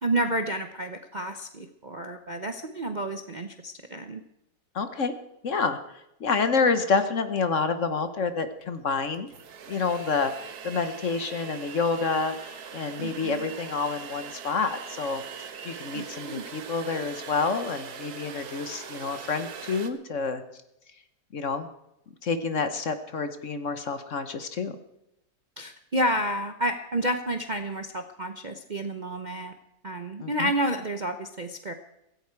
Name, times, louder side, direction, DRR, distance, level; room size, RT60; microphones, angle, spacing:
voice 1, 0.0-4.2 13.0-13.5 15.9-16.4 25.6-29.5 29.8-31.7, right 1 dB, 40° right, 6 dB, 0.7 m, -30 dB
voice 2, 4.7-5.1 5.4-5.8 6.2-9.3 9.7-15.2 15.6-20.4 21.3-21.7 22.2-24.7 30.2-30.5, left 4 dB, 50° left, 10 dB, 1.3 m, -28 dB
sound 1, 8.6-8.7 9.1-19.9, right 7 dB, 65° right, 1.6 m, -41 dB
16.5 x 16.0 x 4.7 m, 0.85 s
omnidirectional pair, 1.8 m